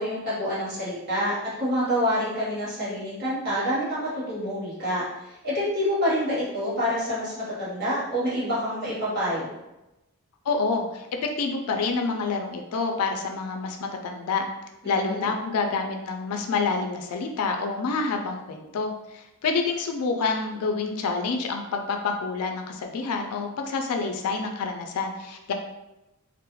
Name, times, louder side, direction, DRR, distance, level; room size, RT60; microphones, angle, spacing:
voice 1, 0.0-9.5 14.8-15.4, equal, 45° right, -10 dB, 1.3 m, -27 dB
voice 2, 10.5-14.5 14.9-25.5, left 4 dB, 80° left, 4 dB, 0.4 m, -28 dB
2.3 x 2.0 x 3.0 m, 0.96 s
head